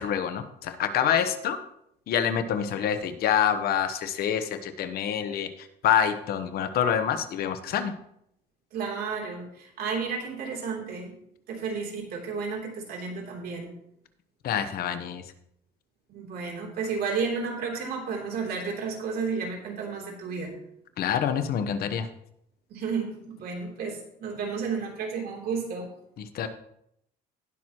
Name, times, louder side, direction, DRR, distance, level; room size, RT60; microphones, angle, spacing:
voice 1, 0.0-1.6 2.1-5.5 5.8-7.9 14.4-15.2 21.0-22.1 26.2-26.5, left 8 dB, 65° left, 10 dB, 1.0 m, -26 dB
voice 2, 8.7-11.2 11.5-13.7 16.1-20.6 22.7-25.9, right 5 dB, 65° right, 0 dB, 3.2 m, -32 dB
18.5 x 6.2 x 3.0 m, 0.74 s
cardioid pair, 110°, 17 cm